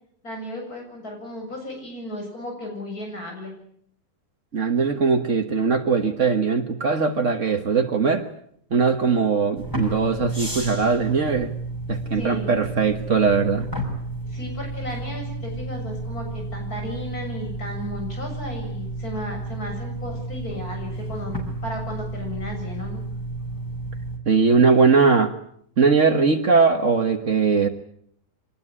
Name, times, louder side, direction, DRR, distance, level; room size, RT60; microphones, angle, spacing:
voice 1, 0.2-3.5 12.1-12.5 14.2-21.3 21.6-23.0, left 1 dB, 90° left, 2 dB, 8.0 m, -34 dB
voice 2, 4.5-8.3 8.7-11.5 11.9-13.7 24.3-25.3 25.8-27.7, right 5 dB, 55° right, 6 dB, 1.7 m, -20 dB
sound 1, 9.6-24.2, right 2 dB, 15° left, 5.9 m, -32 dB
25.0 x 20.0 x 9.9 m, 0.70 s
omnidirectional pair, 1.5 m